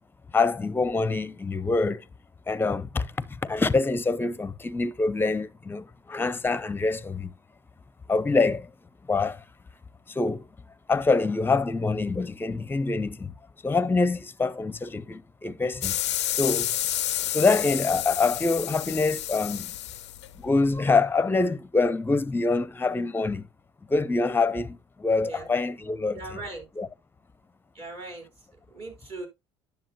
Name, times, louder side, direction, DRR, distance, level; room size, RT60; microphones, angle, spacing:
voice 1, 0.3-2.1 2.5-7.3 8.1-8.7 9.1-9.4 10.1-10.4 10.9-13.3 13.6-16.0 16.4-16.7 17.3-19.8 20.4-23.5 23.9-26.2 26.8-26.9, left 3 dB, 15° left, 0.6 m, -25 dB
sound 1, 15.8-20.8, left 13 dB, 90° left, 0.4 m, -30 dB
voice 2, 26.1-26.7 27.7-28.3 28.7-29.3, right 2 dB, 40° right, 3.8 m, -38 dB
10.0 x 6.9 x 2.8 m
hypercardioid pair, 65°, 14 cm